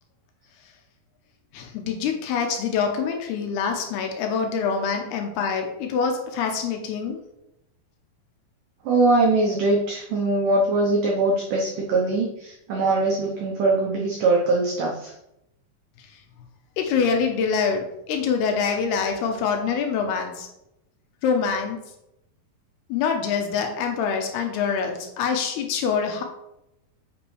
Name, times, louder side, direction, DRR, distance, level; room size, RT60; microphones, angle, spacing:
voice 1, 1.5-7.2 16.0-16.2 16.8-20.5 21.2-21.8 22.9-26.2, left 6 dB, 80° left, 4 dB, 2.6 m, -25 dB
voice 2, 8.9-15.1, right 2 dB, 85° right, -1 dB, 1.8 m, -22 dB
8.5 x 6.1 x 3.2 m, 0.86 s
omnidirectional pair, 5.0 m